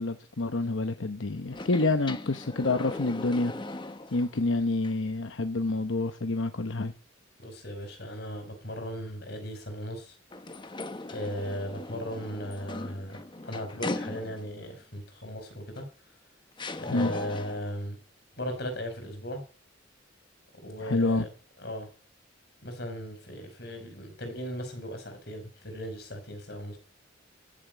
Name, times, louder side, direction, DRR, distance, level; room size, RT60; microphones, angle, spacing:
voice 1, 0.0-3.5 4.1-6.9 16.9-17.1 20.8-21.2, left 2 dB, 85° left, 0.9 m, -28 dB
sound 1, 1.5-4.4 4.8-4.9 10.3-14.6 15.8-15.9 16.6-17.7, left 2 dB, 25° left, 0.9 m, -39 dB
voice 2, 7.4-10.2 11.1-15.9 16.8-18.0 18.4-19.4 20.5-21.3 21.6-21.9 22.6-26.8, equal, 60° left, 5.1 m, -37 dB
15.0 x 7.3 x 9.4 m
head